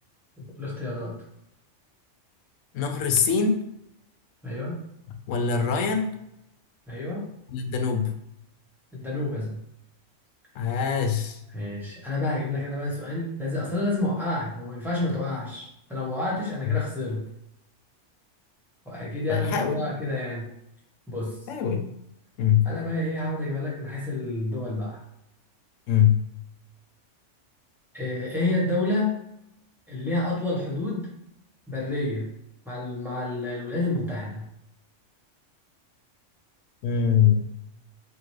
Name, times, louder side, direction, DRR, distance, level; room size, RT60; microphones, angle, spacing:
voice 1, 0.4-1.2 4.4-4.8 6.9-7.3 8.9-9.6 11.5-17.2 18.8-20.5 21.1-21.3 22.6-25.0 27.9-29.1 29.9-31.1 31.7-32.3 32.6-34.4, left 2 dB, ahead, -7 dB, 1.3 m, -29 dB
voice 2, 2.7-3.6 5.3-6.1 7.5-8.2 10.5-11.4 16.7-16.8 19.3-19.9 21.5-21.9 22.4-22.7 25.9-26.3 36.8-37.5, left 7 dB, 90° left, 6 dB, 0.9 m, -23 dB
4.1 x 3.0 x 3.1 m, 0.79 s
omnidirectional pair, 1.3 m